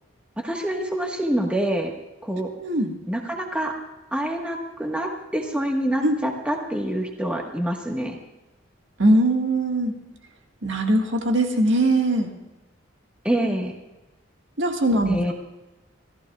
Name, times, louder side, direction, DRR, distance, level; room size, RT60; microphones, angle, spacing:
voice 1, 0.4-1.9 2.2-2.5 3.1-3.7 4.1-8.2 13.2-13.7 15.1-15.3, right 1 dB, 5° right, 0 dB, 1.4 m, -26 dB
voice 2, 2.6-2.9 6.0-6.1 9.0-9.9 10.6-12.3 14.6-15.3, right 1 dB, 65° right, 2 dB, 1.8 m, -21 dB
27.5 x 14.0 x 2.4 m, 1.0 s
head